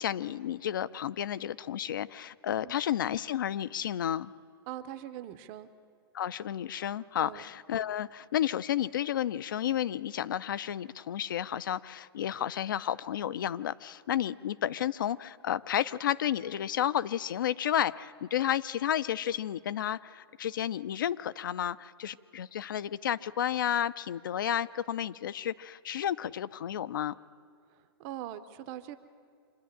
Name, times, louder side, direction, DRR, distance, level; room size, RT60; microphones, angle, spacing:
voice 1, 0.0-4.3 6.1-27.2, left 10 dB, 55° left, 18 dB, 0.5 m, -32 dB
voice 2, 4.7-5.7 7.2-7.4 27.7-29.0, right 12 dB, 20° right, 11 dB, 0.6 m, -42 dB
25.5 x 10.0 x 10.0 m, 2.3 s
hypercardioid pair, 170°, 13 cm